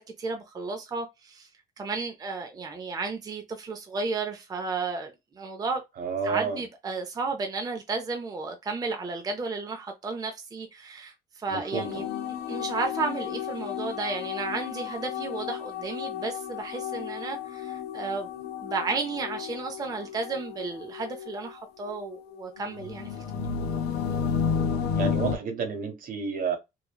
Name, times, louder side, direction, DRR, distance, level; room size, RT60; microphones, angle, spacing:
voice 1, 0.0-1.5 1.8-5.1 5.4-5.8 6.2-12.1 12.5-23.4, right 4 dB, 20° right, 0.5 m, -33 dB
voice 2, 6.0-6.6 11.5-12.1 24.9-26.6, right 5 dB, 55° right, 1.0 m, -30 dB
sound 1, 11.7-21.5 21.8-25.4, left 7 dB, 75° left, 0.6 m, -32 dB
3.1 x 2.3 x 2.2 m
cardioid pair, 110°, 17 cm